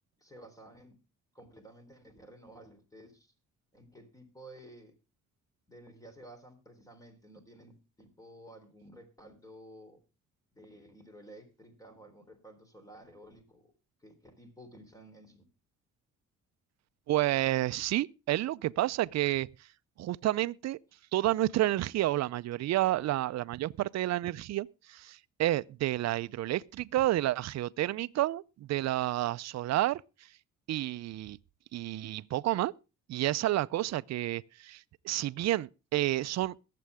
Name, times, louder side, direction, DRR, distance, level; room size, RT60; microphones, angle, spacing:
voice 1, 0.2-1.0 1.3-3.3 3.7-5.0 5.7-10.0 10.5-13.7 14.0-15.5, right 1 dB, 10° left, 3.5 m, -53 dB
voice 2, 17.1-19.5 20.0-20.8 21.1-30.0 30.7-31.4 31.7-32.7 33.1-36.6, right 15 dB, 60° right, 0.5 m, -30 dB
21.5 x 7.6 x 3.5 m
cardioid pair, 90°, 30 cm